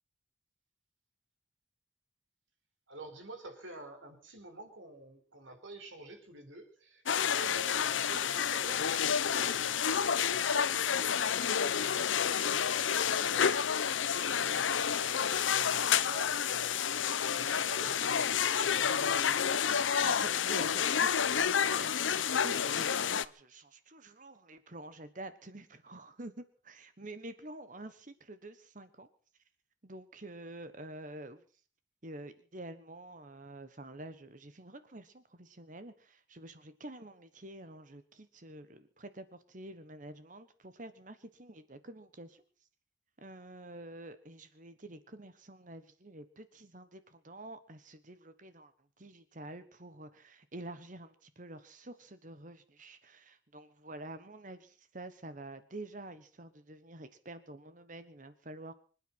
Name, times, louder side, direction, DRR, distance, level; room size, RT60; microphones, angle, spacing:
voice 1, 2.9-20.8, right 2 dB, 90° right, 6 dB, 4.4 m, -50 dB
sound 1, 7.1-23.2, left 8 dB, 90° left, 0.7 m, -29 dB
voice 2, 20.0-29.1 29.8-31.4 32.0-42.4 43.2-58.7, right 1 dB, 45° right, 11 dB, 1.2 m, -48 dB
25.0 x 9.2 x 5.9 m, 0.40 s
head